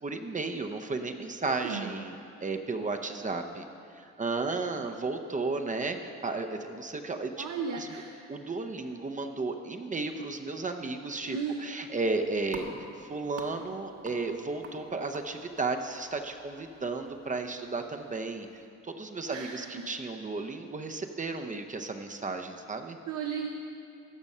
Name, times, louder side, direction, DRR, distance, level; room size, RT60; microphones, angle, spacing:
voice 1, 0.0-3.7 3.9-7.5 7.7-8.0 8.3-12.7 13.0-23.0, right 3 dB, 25° right, 5 dB, 0.7 m, -34 dB
voice 2, 1.4-1.9 7.4-8.1 11.3-11.7 19.3-19.9 23.1-23.5, right 6 dB, 70° right, 2 dB, 0.8 m, -35 dB
sound 1, 11.9-18.7, right 3 dB, 50° right, 1.4 m, -50 dB
14.5 x 5.3 x 5.5 m, 2.5 s
cardioid pair, 90°, 30 cm